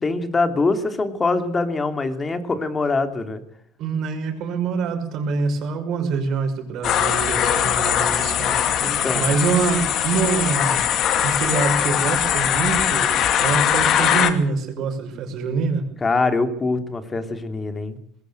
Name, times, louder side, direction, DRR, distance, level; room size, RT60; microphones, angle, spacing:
voice 1, 0.0-3.4 8.8-9.2 16.0-18.0, left 3 dB, 25° left, 8 dB, 2.7 m, -23 dB
voice 2, 3.8-10.9 11.2-13.1 13.4-15.8, right 5 dB, 55° right, 6 dB, 5.6 m, -25 dB
sound 1, 6.8-14.3, left 9 dB, 55° left, 2.3 m, -21 dB
20.5 x 17.0 x 8.1 m, 0.70 s
supercardioid pair, 105°, 0 cm